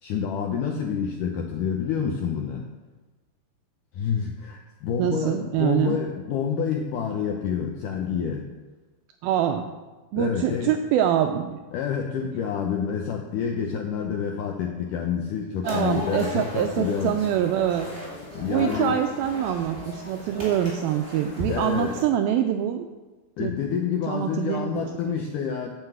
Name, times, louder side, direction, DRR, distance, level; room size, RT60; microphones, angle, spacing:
voice 1, 0.0-2.7 3.9-8.5 10.2-10.8 11.7-17.2 18.3-19.0 21.5-22.0 23.4-25.7, left 7 dB, 80° left, 2 dB, 1.9 m, -28 dB
voice 2, 5.0-6.0 9.2-9.6 10.1-11.6 15.6-17.9 18.4-22.9 23.4-23.5 24.1-25.2, right 10 dB, 85° right, 6 dB, 2.1 m, -25 dB
sound 1, 15.6-22.0, left 1 dB, 15° right, 2.2 m, -36 dB
9.4 x 7.6 x 7.7 m, 1.2 s
omnidirectional pair, 4.8 m